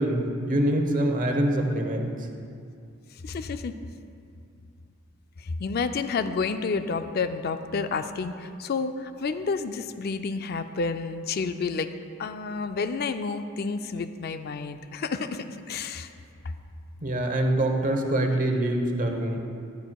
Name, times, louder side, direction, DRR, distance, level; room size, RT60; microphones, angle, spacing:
voice 1, 0.0-2.1 17.0-19.4, right 1 dB, 40° right, 4 dB, 1.0 m, -25 dB
voice 2, 3.2-3.7 5.4-11.9 12.2-16.1, left 4 dB, 50° left, 9 dB, 0.4 m, -30 dB
13.5 x 11.5 x 2.3 m, 2.4 s
head